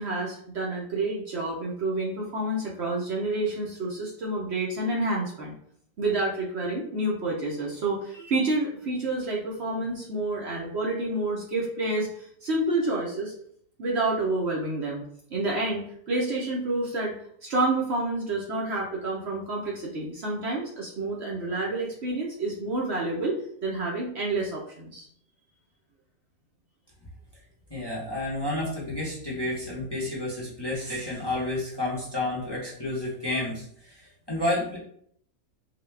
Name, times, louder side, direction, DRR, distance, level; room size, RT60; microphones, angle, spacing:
voice 1, 0.0-5.5 6.0-13.3 13.8-15.0 15.3-17.1 17.4-25.1, right 2 dB, 55° right, -3 dB, 0.9 m, -29 dB
voice 2, 27.7-34.8, left 1 dB, 20° left, -5 dB, 0.8 m, -30 dB
4.0 x 2.3 x 3.2 m, 0.63 s
omnidirectional pair, 1.5 m